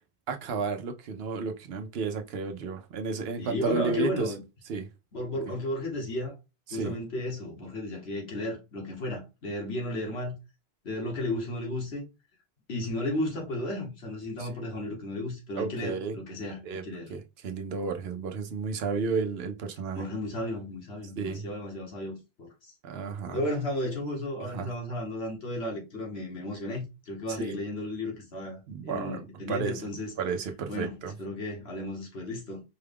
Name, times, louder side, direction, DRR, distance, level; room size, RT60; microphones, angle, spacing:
voice 1, 0.3-4.3 4.7-4.9 5.5-5.6 6.7-6.9 14.4-14.5 15.6-16.2 16.6-16.8 17.1-20.0 21.2-21.4 22.8-23.4 24.4-24.7 27.3-27.6 28.7-29.9 30.2-31.1, right 5 dB, 80° right, 0.9 m, -32 dB
voice 2, 3.4-4.4 5.1-6.4 6.7-10.3 10.8-12.0 12.7-17.1 19.9-22.7 23.3-30.1 30.7-32.6, left 1 dB, 85° left, 1.6 m, -34 dB
4.6 x 2.2 x 3.4 m
omnidirectional pair, 1.0 m